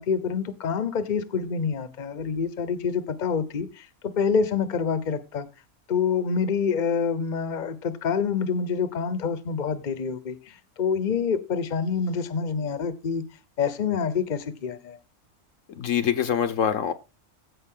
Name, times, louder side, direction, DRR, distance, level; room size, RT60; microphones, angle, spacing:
voice 1, 0.0-3.9 4.2-5.5 5.9-13.2 13.6-15.0, left 6 dB, 40° left, 0.9 m, -27 dB
voice 2, 15.8-16.9, left 8 dB, 70° left, 1.1 m, -24 dB
15.5 x 5.3 x 3.7 m
omnidirectional pair, 1.4 m